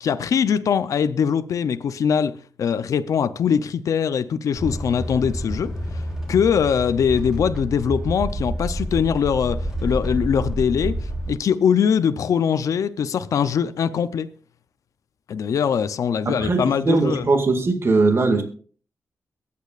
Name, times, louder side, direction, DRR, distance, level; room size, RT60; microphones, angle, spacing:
voice 1, 0.0-6.0 6.3-14.3 15.3-17.3, left 7 dB, 75° left, 0.6 m, -22 dB
sound 1, 4.5-11.3, right 1 dB, 10° right, 3.2 m, -29 dB
voice 2, 16.3-18.4, right 3 dB, 50° right, 2.0 m, -20 dB
22.0 x 8.5 x 2.5 m
cardioid pair, 70°, 6 cm